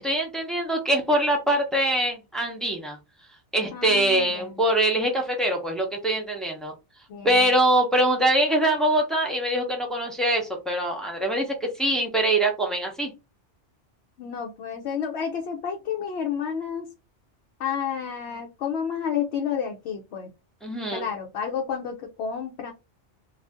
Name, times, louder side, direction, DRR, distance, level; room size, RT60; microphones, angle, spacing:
voice 1, 0.0-3.0 3.5-6.7 7.2-13.1 20.6-21.0, right 1 dB, ahead, 0 dB, 0.6 m, -23 dB
voice 2, 3.7-4.6 7.1-7.5 14.2-16.9 17.6-20.3 20.9-22.7, left 7 dB, 70° left, 2 dB, 0.8 m, -30 dB
2.5 x 2.4 x 3.5 m, 0.26 s
omnidirectional pair, 1.2 m